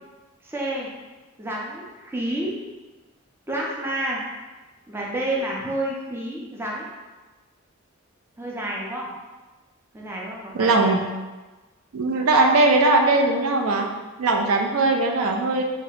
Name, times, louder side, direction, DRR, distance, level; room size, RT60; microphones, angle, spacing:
voice 1, 0.4-0.9 1.4-2.6 3.5-4.2 4.9-6.9 8.4-9.1 9.9-11.0, right 1 dB, 10° right, -3 dB, 0.4 m, -29 dB
voice 2, 10.5-11.0 11.9-13.9 14.2-15.6, right 2 dB, 75° right, 3 dB, 0.4 m, -19 dB
2.8 x 2.2 x 3.9 m, 1.2 s
head